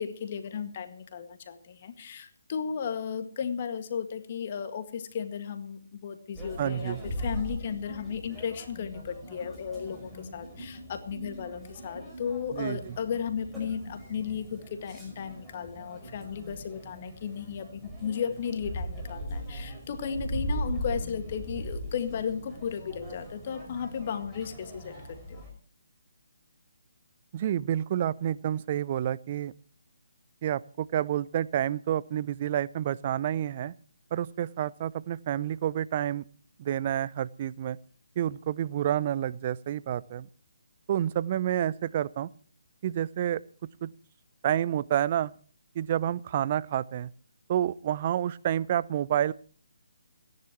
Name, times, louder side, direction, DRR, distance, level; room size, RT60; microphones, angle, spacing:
voice 1, 0.0-25.4, left 7 dB, 40° left, 8 dB, 1.9 m, -35 dB
sound 1, 6.3-25.5, equal, 5° right, 5.9 m, -39 dB
voice 2, 6.6-7.0 12.5-12.9 27.3-29.5 30.4-33.7 34.1-36.2 36.6-37.8 38.2-40.3 40.9-42.3 42.8-43.4 43.8-43.9 44.4-45.3 45.7-47.1 47.5-49.3, right 11 dB, 35° right, 19 dB, 0.6 m, -29 dB
29.5 x 10.5 x 3.1 m, 0.44 s
figure-of-eight pair, 145°, 0 cm